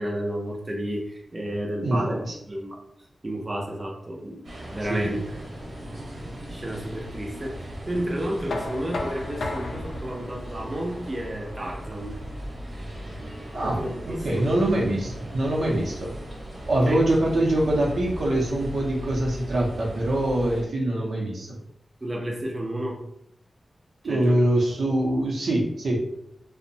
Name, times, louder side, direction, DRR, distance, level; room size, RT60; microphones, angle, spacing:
voice 1, 0.0-2.2 2.5-2.8 3.2-5.4 6.5-12.2 13.8-14.4 15.6-15.8 16.9-17.0 22.0-23.0 24.0-24.4, right 1 dB, 25° right, -1 dB, 0.4 m, -31 dB
voice 2, 1.8-2.3 4.9-5.2 13.5-16.1 16.7-21.6 24.0-26.1, right 1 dB, 90° right, -3 dB, 0.6 m, -24 dB
sound 1, 4.4-20.6, right 1 dB, 55° right, 0.8 m, -38 dB
Knock, 8.5-14.3, left 2 dB, 75° left, 0.3 m, -37 dB
2.6 x 2.1 x 2.6 m, 0.77 s
wide cardioid pair, 125°, 0 cm